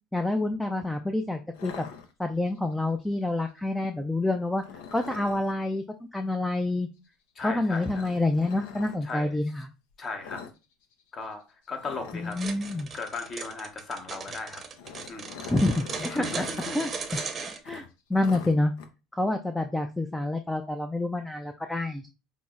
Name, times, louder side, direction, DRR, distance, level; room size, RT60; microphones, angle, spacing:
voice 1, 0.1-1.8 2.2-4.6 4.9-5.8 6.1-6.9 7.4-9.7 12.1-12.9 15.5-16.4 16.7-16.9 17.7-17.8 18.1-18.7 19.1-22.1, left 2 dB, 5° left, 0.3 m, -27 dB
sound 1, 1.5-2.6 4.6-5.5 7.7-9.0 10.2-10.6 10.8-11.0 11.3-11.4 11.8-12.9 14.5-16.7 17.1-17.2 17.6-18.9, left 6 dB, 80° left, 0.5 m, -43 dB
voice 2, 7.4-8.1 9.0-9.6 10.0-10.4 11.1-12.4 12.9-14.6 15.1-15.4 16.1-16.8 17.1-17.3, left 4 dB, 35° left, 0.9 m, -37 dB
sound 2, 12.3-17.6, right 5 dB, 30° right, 0.7 m, -37 dB
5.3 x 2.0 x 2.3 m
supercardioid pair, 95°, 0 cm